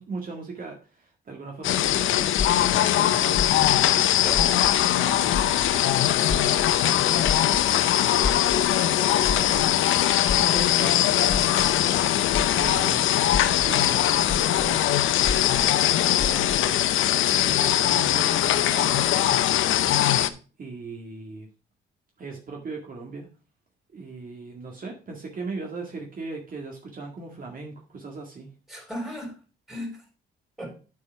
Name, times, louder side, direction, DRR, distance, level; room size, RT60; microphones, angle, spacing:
voice 1, 0.0-4.2 4.5-5.6 6.1-8.4 8.9-10.0 10.3-11.8 12.5-13.2 13.5-15.0 15.5-16.6 17.4-19.4 20.6-21.5 22.2-23.3 23.9-28.5, right 3 dB, 45° right, 1.9 m, -39 dB
sound 1, 1.6-20.3, left 12 dB, 80° left, 0.7 m, -21 dB
sound 2, 2.3-5.0 5.3-12.8 13.2-16.7, left 4 dB, 30° left, 1.2 m, -33 dB
voice 2, 4.2-4.5 19.9-20.4 28.7-29.4 29.7-30.1 30.6-30.8, equal, ahead, 4.0 m, -36 dB
8.4 x 4.9 x 5.6 m
cardioid pair, 90°, 20 cm